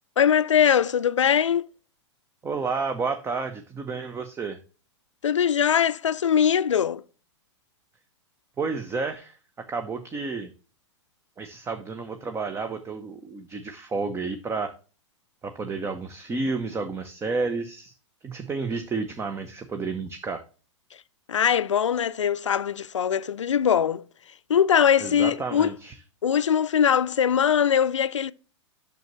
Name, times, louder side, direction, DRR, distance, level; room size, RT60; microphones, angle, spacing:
voice 1, 0.2-1.6 5.2-7.0 21.3-24.0 24.5-25.7 26.2-28.3, left 8 dB, 85° left, 0.5 m, -21 dB
voice 2, 2.4-4.6 8.6-9.4 9.7-10.5 11.4-14.7 15.4-17.9 18.2-20.4 25.0-25.9, right 4 dB, 15° right, 0.8 m, -31 dB
9.2 x 6.7 x 3.1 m
hypercardioid pair, 105°, 15 cm